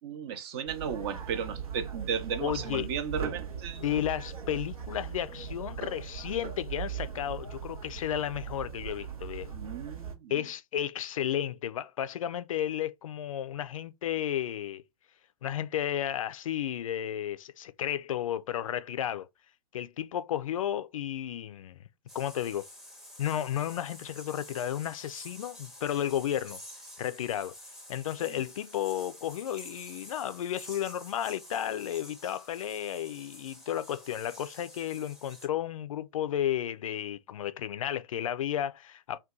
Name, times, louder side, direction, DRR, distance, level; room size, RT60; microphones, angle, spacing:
voice 1, 0.0-3.8 9.5-10.3 28.3-28.4, right 7 dB, 45° right, 0.7 m, -35 dB
sound 1, 0.7-10.2, right 7 dB, 75° right, 0.8 m, -39 dB
voice 2, 2.4-2.9 3.8-9.5 10.3-14.8 15.4-19.3 19.7-21.8 22.1-22.7 23.2-26.6 27.0-27.5 27.9-39.2, left 11 dB, 60° left, 0.4 m, -33 dB
sound 2, 22.1-35.5, left 1 dB, ahead, 0.7 m, -49 dB
2.7 x 2.2 x 3.6 m
figure-of-eight pair, 115°, 19 cm